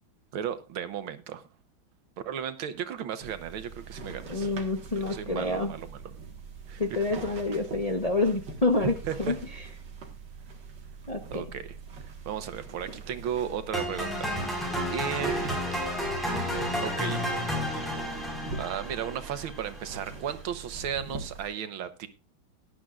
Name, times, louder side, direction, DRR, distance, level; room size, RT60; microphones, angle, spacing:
voice 1, 0.3-1.5 2.3-4.5 5.1-6.0 6.7-7.0 9.0-9.3 11.3-11.8 12.3-15.6 16.8-17.3 18.6-22.1, right 9 dB, 90° right, 1.9 m, -35 dB
sound 1, 3.2-21.5, right 4 dB, 60° right, 2.3 m, -43 dB
voice 2, 4.3-5.7 6.8-9.4 11.1-11.4, left 2 dB, 30° left, 0.7 m, -28 dB
sound 2, 13.7-19.8, equal, ahead, 4.5 m, -31 dB
18.0 x 11.0 x 2.4 m
omnidirectional pair, 2.2 m